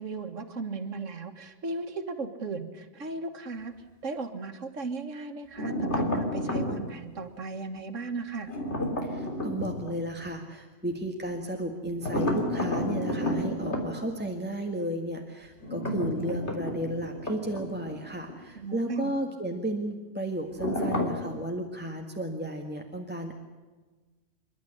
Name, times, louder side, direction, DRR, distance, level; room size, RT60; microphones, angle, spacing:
voice 1, 0.0-3.7 4.0-8.5 18.6-19.2, right 3 dB, 90° right, 6 dB, 1.9 m, -36 dB
sound 1, 5.6-6.9 8.5-9.9 12.0-13.8 15.6-18.0 18.3-18.4 20.6-21.3, left 1 dB, 65° left, 3.7 m, -30 dB
voice 2, 9.0-23.3, right 1 dB, 10° right, 2 dB, 1.7 m, -33 dB
28.5 x 12.0 x 10.0 m, 1.3 s
omnidirectional pair, 1.3 m